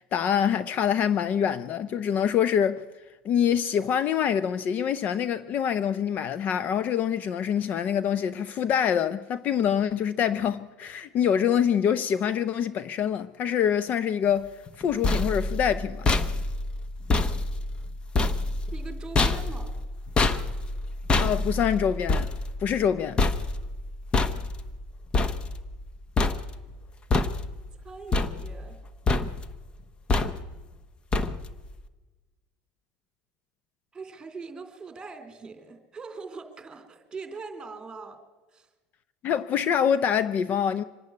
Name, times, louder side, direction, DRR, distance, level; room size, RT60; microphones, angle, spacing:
voice 1, 0.0-2.8 3.2-16.1 21.2-22.3 22.6-23.2 39.2-40.8, left 8 dB, 45° left, 0.6 m, -25 dB
sound 1, 14.7-25.9 26.2-26.8 27.1-27.8 28.1-28.8 29.1-29.6 30.1-30.6 31.1-31.7, left 3 dB, 25° left, 1.0 m, -27 dB
voice 2, 18.7-19.7 27.7-28.8 33.9-38.2 38.5-38.7, right 4 dB, 15° right, 3.3 m, -41 dB
25.0 x 11.5 x 9.6 m
supercardioid pair, 120°, 4 cm